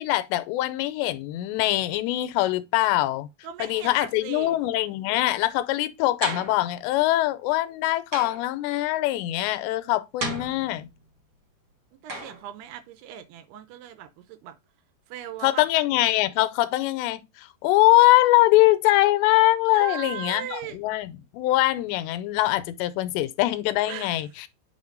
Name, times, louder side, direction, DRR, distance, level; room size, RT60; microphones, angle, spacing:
voice 1, 0.0-3.3 3.6-10.9 15.4-24.3, left 17 dB, 90° left, 2.8 m, -23 dB
voice 2, 3.4-4.6 12.0-14.6 15.1-15.7 19.7-20.8 23.9-24.2, right 11 dB, 80° right, 2.6 m, -38 dB
sound 1, 6.2-6.7 8.1-8.5 10.2-11.0 12.1-12.5, right 2 dB, 45° right, 1.6 m, -33 dB
8.4 x 3.6 x 3.8 m
omnidirectional pair, 5.0 m